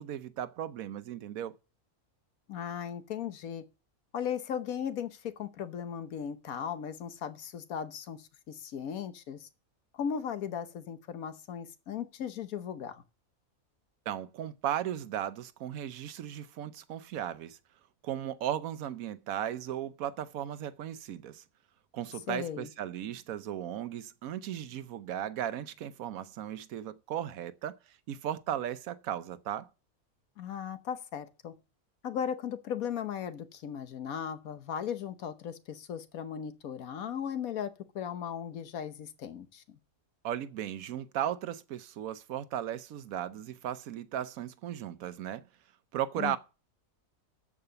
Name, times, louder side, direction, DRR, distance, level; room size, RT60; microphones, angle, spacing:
voice 1, 0.0-1.5 14.1-17.6 18.0-21.4 21.9-29.7 40.2-45.4 45.9-46.4, right 10 dB, 75° right, 1.2 m, -36 dB
voice 2, 2.5-3.6 4.1-9.5 9.9-13.0 22.3-22.7 30.4-31.5 32.0-39.8 46.2-46.4, left 8 dB, 80° left, 1.4 m, -37 dB
13.5 x 4.9 x 6.8 m
omnidirectional pair, 1.5 m